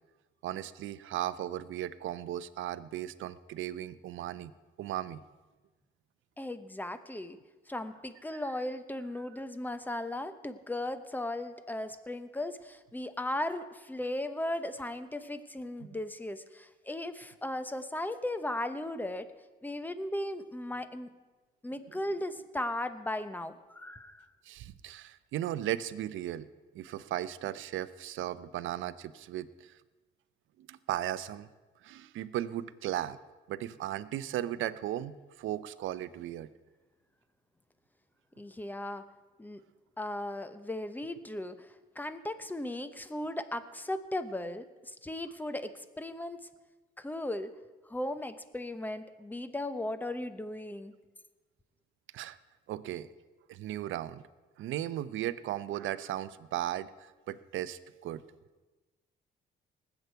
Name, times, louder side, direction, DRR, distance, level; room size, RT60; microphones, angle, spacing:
voice 1, 0.4-4.5 4.8-5.2 8.3-8.4 24.5-26.5 26.7-29.7 30.6-31.5 31.8-33.2 33.5-36.5 52.1-52.4 52.7-53.1 53.5-54.2 54.6-58.2, right 12 dB, 80° right, 15 dB, 0.6 m, -36 dB
voice 2, 6.4-7.4 7.7-19.3 19.6-21.1 21.6-24.3 38.4-39.1 39.4-39.6 40.0-41.7 41.9-46.5 47.0-47.5 47.9-50.9, left 1 dB, 10° left, 11 dB, 0.9 m, -37 dB
19.5 x 8.1 x 4.6 m, 1.2 s
cardioid pair, 90°, 20 cm